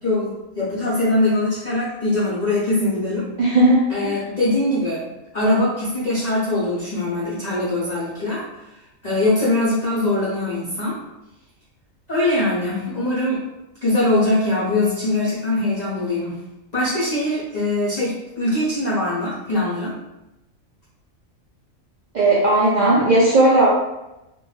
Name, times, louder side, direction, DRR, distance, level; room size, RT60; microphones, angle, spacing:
voice 1, 0.0-3.3 3.9-5.0 5.3-8.4 8.7-11.0 12.1-13.5 13.8-16.4 16.7-19.9, left 2 dB, 50° left, -8 dB, 0.5 m, -22 dB
voice 2, 3.4-3.9 22.1-23.7, right 2 dB, 85° right, -7 dB, 0.4 m, -15 dB
2.6 x 2.1 x 3.1 m, 0.94 s
omnidirectional pair, 1.4 m